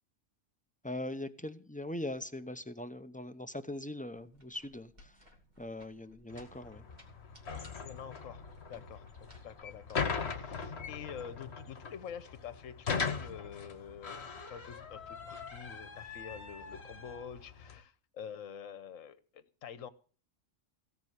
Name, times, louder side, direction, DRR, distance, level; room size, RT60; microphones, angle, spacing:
voice 1, 0.8-5.3 5.6-6.8, left 1 dB, 15° left, 0.3 m, -41 dB
sound 1, 4.1-11.5, equal, 30° right, 3.0 m, -62 dB
sound 2, 6.3-17.8, left 5 dB, 55° left, 1.5 m, -40 dB
voice 2, 7.8-19.9, left 8 dB, 75° left, 1.3 m, -47 dB
16.5 x 6.1 x 9.4 m
omnidirectional pair, 1.4 m